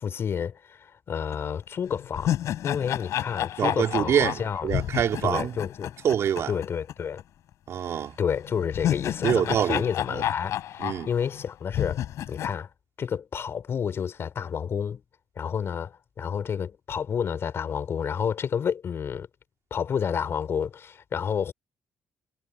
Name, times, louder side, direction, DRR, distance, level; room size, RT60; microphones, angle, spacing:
voice 1, 0.0-2.3 2.6-4.7 5.2-5.9 6.5-7.2 8.2-12.7 13.0-15.0 15.4-19.3 19.7-21.5, left 7 dB, 55° left, 4.6 m, -30 dB
sound 1, 1.3-1.4 1.9-6.9 7.2-7.3 8.5-11.4 11.7-12.5, left 12 dB, 75° left, 6.9 m, -30 dB
voice 2, 3.6-5.5 6.0-6.5 7.7-8.1 9.2-9.8 10.1-10.2 10.8-11.1, right 9 dB, 65° right, 3.7 m, -25 dB
cardioid pair, 90°, 5 cm